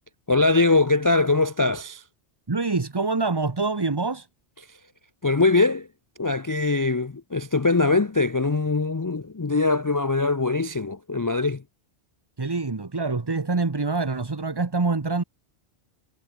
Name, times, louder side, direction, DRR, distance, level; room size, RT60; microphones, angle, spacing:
voice 1, 0.3-2.0 4.7-4.8 5.2-5.9 6.2-11.6, left 3 dB, 30° left, 0.4 m, -22 dB
voice 2, 2.5-4.3 12.4-15.2, right 3 dB, 25° right, 0.9 m, -25 dB
omnidirectional pair, 1.2 m